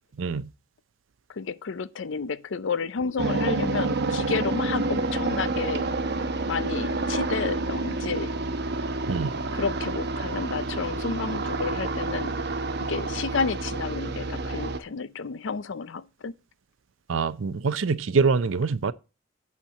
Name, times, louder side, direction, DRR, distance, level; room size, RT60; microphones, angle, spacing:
voice 1, 0.2-0.5 9.1-9.3 17.1-18.9, right 4 dB, 70° right, 0.5 m, -24 dB
voice 2, 1.3-5.9 6.5-8.3 9.5-12.4 12.9-16.3, left 5 dB, 65° left, 0.5 m, -31 dB
sound 1, 3.2-14.8, right 2 dB, 55° right, 0.9 m, -29 dB
8.4 x 4.4 x 7.3 m
head